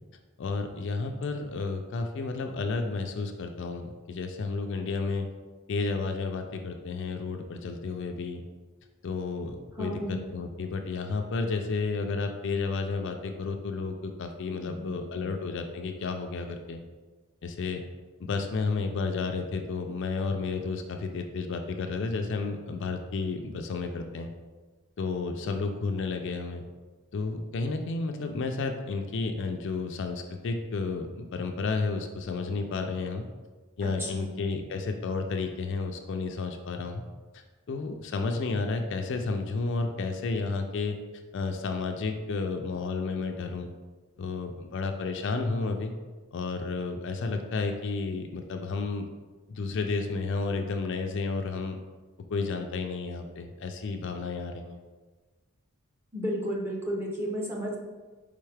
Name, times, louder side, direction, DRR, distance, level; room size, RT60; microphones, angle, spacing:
voice 1, 0.4-5.3 5.7-8.4 9.0-16.8 17.4-17.8 18.2-24.3 25.0-26.6 27.1-33.2 33.8-37.0 37.7-41.0 41.3-43.7 44.2-45.9 46.3-49.1 49.5-51.8 52.3-54.8, left 4 dB, 55° left, 5 dB, 0.4 m, -31 dB
voice 2, 9.8-10.2 14.5-15.3 33.8-34.4 56.1-57.8, equal, 10° right, -2 dB, 0.7 m, -33 dB
4.6 x 3.5 x 3.3 m, 1.3 s
head